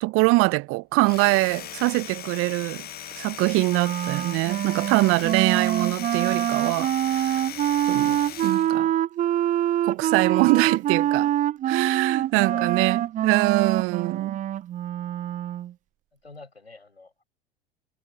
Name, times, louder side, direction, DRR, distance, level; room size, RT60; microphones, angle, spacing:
voice 1, 0.0-2.9 3.2-7.4 7.9-8.1 8.4-8.9 9.8-11.3 11.7-14.4, right 24 dB, 45° right, 0.9 m, -23 dB
Domestic sounds home sounds, 0.9-8.8, left 11 dB, 30° left, 1.4 m, -39 dB
Wind instrument woodwind instrument, 3.7-15.7, right 12 dB, 25° right, 0.5 m, -25 dB
voice 2, 8.0-8.4 12.5-12.8 16.1-17.2, left 3 dB, 90° left, 7.1 m, -46 dB
figure-of-eight pair, 75°, 31 cm